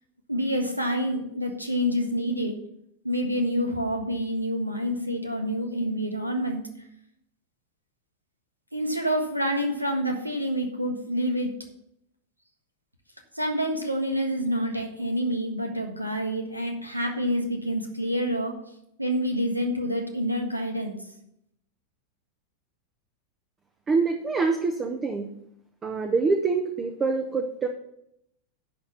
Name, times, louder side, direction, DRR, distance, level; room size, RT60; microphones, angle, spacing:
voice 1, 0.3-2.6 3.0-6.6 8.7-11.5 13.3-18.5 19.0-20.9, equal, 85° right, 3 dB, 1.5 m, -27 dB
voice 2, 23.9-25.3 25.8-27.7, right 4 dB, 20° right, 5 dB, 0.9 m, -25 dB
11.0 x 4.4 x 7.0 m, 0.77 s
figure-of-eight pair, 90°, 0 cm